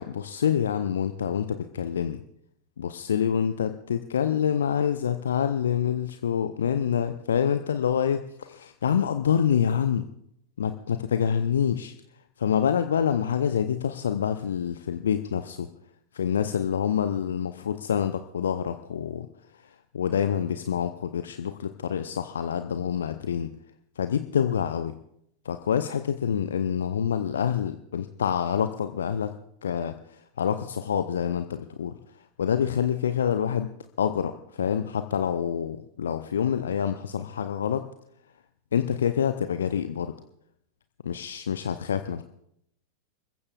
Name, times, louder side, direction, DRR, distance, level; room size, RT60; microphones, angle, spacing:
voice 1, 0.0-2.2 2.8-10.1 10.6-11.9 12.4-15.7 16.1-19.3 19.5-23.5 24.0-24.9 25.4-29.3 29.6-33.7 34.0-37.9 38.7-40.1 41.0-42.2, left 8 dB, 65° left, 9 dB, 0.6 m, -27 dB
30.0 x 15.0 x 2.4 m, 0.73 s
figure-of-eight pair, 90°, 0 cm